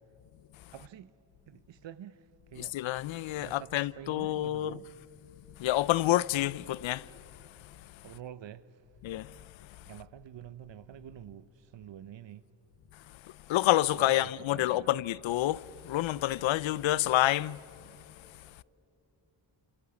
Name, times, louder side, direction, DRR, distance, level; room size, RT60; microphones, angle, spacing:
voice 1, 0.7-1.1 1.5-2.8 3.4-4.9 8.0-8.8 9.8-12.5 14.0-14.9, right 10 dB, 75° right, 0.9 m, -47 dB
voice 2, 2.6-4.8 5.6-7.0 9.0-9.3 13.5-17.6, left 15 dB, 90° left, 0.6 m, -28 dB
28.0 x 27.0 x 7.1 m
cardioid pair, 85°, 45 cm